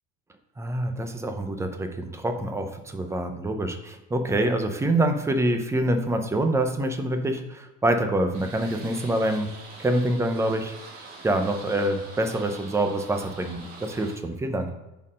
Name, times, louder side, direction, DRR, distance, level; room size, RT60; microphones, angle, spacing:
voice 1, 0.6-9.5 9.8-10.7 11.2-14.7, right 1 dB, 10° right, 6 dB, 0.5 m, -26 dB
sound 1, 8.3-14.1, right 3 dB, 85° right, 2.2 m, -44 dB
5.6 x 4.4 x 6.2 m, 1.0 s
cardioid pair, 150°, 34 cm